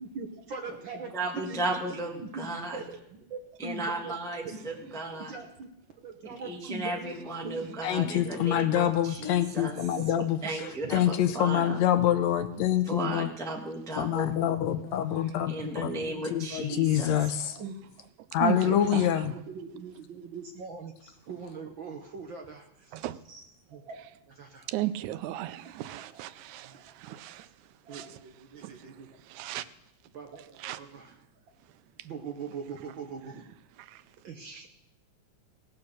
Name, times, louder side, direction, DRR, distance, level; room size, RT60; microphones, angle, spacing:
voice 1, 0.0-1.7 2.2-2.5 2.7-4.1 4.4-5.7 6.0-8.7 9.6-9.7 10.0-10.2 10.6-11.3 11.7-11.8 12.0-12.1 12.5-12.6 13.0-13.2 15.5-16.4 17.6-17.8 18.4-23.0 23.7-24.7 25.9-26.2 26.6-26.8 27.9-29.2 30.1-31.1 32.0-33.4 34.2-34.7, right 5 dB, 60° right, 1.3 m, -42 dB
voice 2, 1.1-2.8 3.6-5.3 6.4-9.8 10.4-11.8 12.9-14.3 15.5-17.3 23.3-23.4, right 2 dB, 5° left, 0.5 m, -35 dB
voice 3, 7.8-10.6 10.9-13.3 14.0-15.9 16.3-17.6 18.3-19.3, left 11 dB, 75° left, 1.9 m, -26 dB
voice 4, 18.4-19.1 22.9-23.2 24.7-27.5 27.9-28.2 28.6-28.7 29.3-29.6 30.6-30.8 33.8-34.0, right 14 dB, 90° right, 2.1 m, -35 dB
17.5 x 7.2 x 6.4 m
omnidirectional pair, 3.3 m